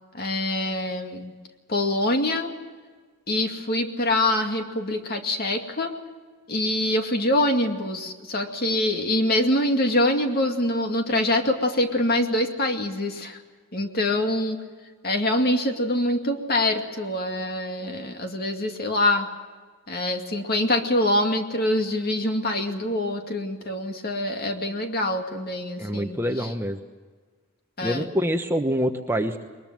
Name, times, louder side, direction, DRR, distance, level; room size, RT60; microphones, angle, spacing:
voice 1, 0.1-1.3 1.7-2.5 3.3-5.9 6.5-13.4 13.7-14.6 15.0-19.3 19.9-26.5 27.8-28.1, left 1 dB, 45° left, 4 dB, 2.3 m, -25 dB
voice 2, 25.8-26.8 27.8-29.4, equal, 10° right, 5 dB, 1.0 m, -26 dB
22.0 x 21.0 x 7.5 m, 1.4 s
head